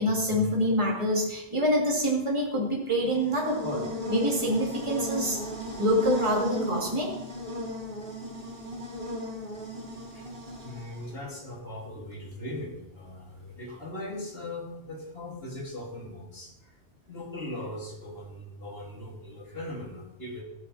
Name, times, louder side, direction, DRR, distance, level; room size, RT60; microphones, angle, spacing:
voice 1, 0.0-5.4 5.8-7.1, equal, 25° right, -3 dB, 2.7 m, -26 dB
Buzz, 3.0-11.1, equal, 60° right, 3.6 m, -35 dB
voice 2, 10.6-16.7 17.1-20.4, left 1 dB, 60° left, -1 dB, 3.2 m, -39 dB
15.0 x 10.0 x 4.2 m, 0.86 s
omnidirectional pair, 1.2 m